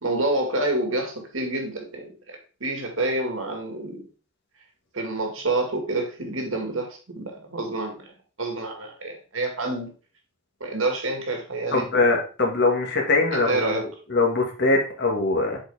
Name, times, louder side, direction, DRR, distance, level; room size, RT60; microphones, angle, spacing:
voice 1, 0.0-4.0 4.9-8.0 8.4-9.9 10.6-11.9 13.3-13.8, right 2 dB, 75° right, 3 dB, 2.0 m, -28 dB
voice 2, 11.7-15.6, left 3 dB, 55° left, 1 dB, 1.8 m, -22 dB
7.6 x 4.6 x 3.5 m, 0.35 s
head